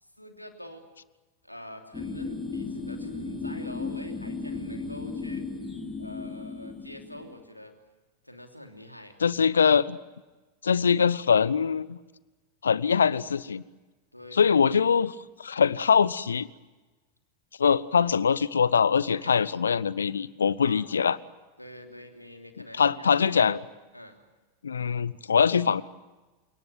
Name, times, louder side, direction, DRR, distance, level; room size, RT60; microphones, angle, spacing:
voice 1, 0.0-0.9 1.4-5.4 6.0-7.7 8.2-9.2 14.1-14.8 19.2-19.4 20.6-21.1 21.6-23.5 23.9-24.2, left 1 dB, 90° left, 4 dB, 3.0 m, -45 dB
sound 1, 1.9-7.4, left 3 dB, 10° left, 7.1 m, -35 dB
voice 2, 9.2-10.0 10.6-12.0 12.6-13.6 14.3-15.1 15.4-16.5 17.6-21.2 22.8-23.6 24.6-25.8, left 6 dB, 70° left, 20 dB, 0.8 m, -23 dB
29.0 x 19.0 x 9.2 m, 1.2 s
figure-of-eight pair, 90°, 0 cm